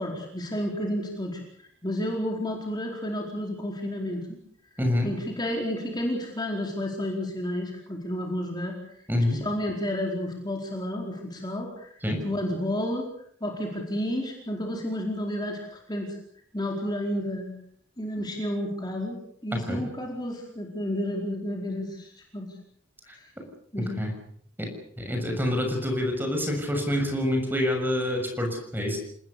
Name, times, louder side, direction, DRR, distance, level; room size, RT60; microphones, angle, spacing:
voice 1, 0.0-4.2 5.0-8.7 9.3-11.9 12.2-13.1 13.4-16.2 16.5-17.5 18.0-19.2 19.4-22.5 23.1-23.3 23.7-24.0, left 1 dB, 20° left, 0 dB, 4.5 m, -31 dB
voice 2, 4.8-5.1 9.1-9.4 12.0-12.2 19.7-19.8 23.4-23.5 23.8-24.1 24.6-24.7 25.0-29.0, left 1 dB, 10° right, 3 dB, 6.7 m, -27 dB
29.5 x 19.5 x 6.9 m, 0.66 s
head